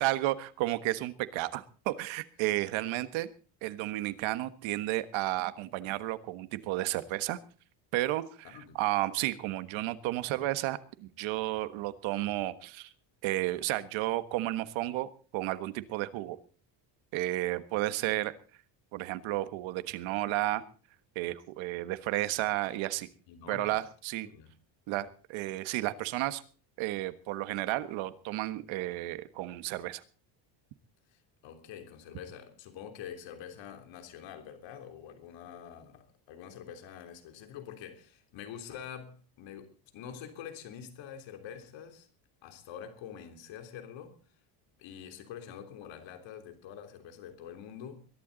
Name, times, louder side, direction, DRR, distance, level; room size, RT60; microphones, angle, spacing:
voice 1, 0.0-3.3 3.6-7.4 7.9-12.9 13.2-16.4 17.1-18.3 18.9-20.6 21.1-23.1 23.5-24.3 24.9-26.4 26.8-30.0, right 16 dB, 65° right, 1.5 m, -32 dB
voice 2, 8.4-8.8 23.3-23.8 24.2-24.5 31.4-42.1 42.4-44.2 44.8-48.1, left 8 dB, 60° left, 3.4 m, -46 dB
22.0 x 12.0 x 4.0 m
cardioid pair, 135°, 50 cm